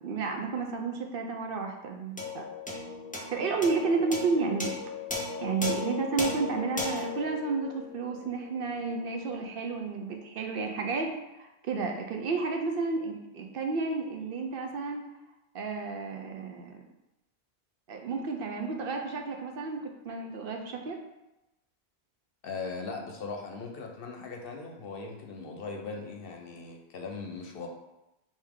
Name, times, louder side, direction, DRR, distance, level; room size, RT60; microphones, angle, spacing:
voice 1, 0.0-2.5 3.1-4.7 5.4-15.1 15.5-16.8 17.9-21.0, right 4 dB, 65° right, 3 dB, 0.7 m, -32 dB
sound 1, 2.2-8.8, left 3 dB, 15° left, 0.3 m, -36 dB
voice 2, 22.4-27.7, left 4 dB, 65° left, 2 dB, 0.8 m, -39 dB
4.9 x 2.7 x 3.5 m, 0.94 s
omnidirectional pair, 1.1 m